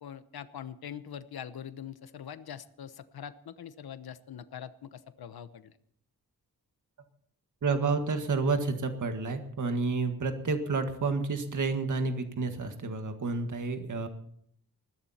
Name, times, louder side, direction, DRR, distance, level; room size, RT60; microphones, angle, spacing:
voice 1, 0.0-5.7, left 8 dB, 75° left, 12 dB, 1.0 m, -43 dB
voice 2, 7.6-14.1, right 4 dB, 50° right, 6 dB, 1.8 m, -30 dB
20.5 x 14.5 x 4.3 m, 0.65 s
wide cardioid pair, 140°, 37 cm